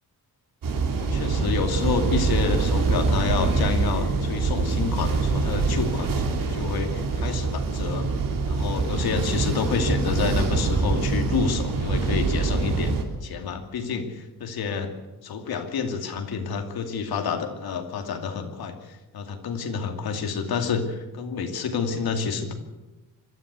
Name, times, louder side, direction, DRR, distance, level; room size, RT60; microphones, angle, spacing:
sound 1, 0.6-13.0, right 4 dB, 65° right, 3.0 m, -25 dB
voice 1, 1.0-8.1 8.5-12.9 13.2-14.9 15.2-18.8 19.1-22.5, left 5 dB, 85° left, 5 dB, 2.5 m, -28 dB
25.0 x 13.0 x 8.3 m, 1.1 s
wide cardioid pair, 145°, 36 cm